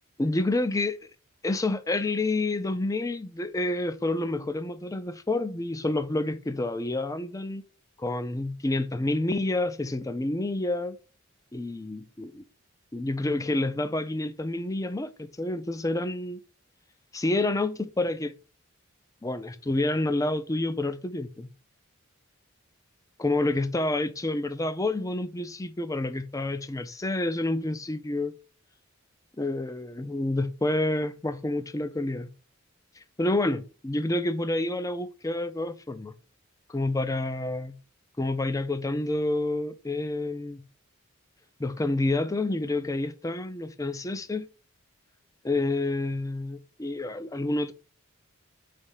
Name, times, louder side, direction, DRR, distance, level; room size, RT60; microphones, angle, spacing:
voice 1, 0.2-1.0 1.4-7.6 8.0-11.0 11.5-12.4 12.9-16.4 17.1-18.3 19.2-21.5 23.2-28.3 29.4-32.3 33.2-36.1 36.7-37.7 38.2-40.6 41.6-44.5 45.4-47.7, left 2 dB, 15° left, 0.4 m, -28 dB
5.2 x 3.4 x 5.6 m
head